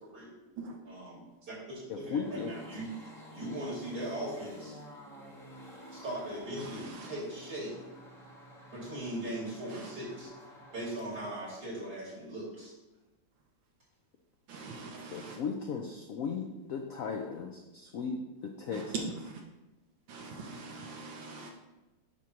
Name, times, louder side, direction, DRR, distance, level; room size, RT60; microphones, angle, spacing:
voice 1, 0.8-2.9 3.3-4.7 5.9-7.8 8.7-10.3 10.7-12.7, right 1 dB, 50° right, -6 dB, 3.3 m, -39 dB
voice 2, 1.9-2.5 15.1-19.1, left 5 dB, 90° left, 3 dB, 0.7 m, -37 dB
sound 1, 2.2-11.1, equal, ahead, 1.2 m, -51 dB
voice 3, 6.6-7.1 9.7-9.9 14.5-15.4 18.7-18.9 19.3-19.4 20.1-21.5, right 3 dB, 75° right, 1 dB, 1.4 m, -44 dB
8.5 x 3.0 x 5.7 m, 1.1 s
omnidirectional pair, 2.2 m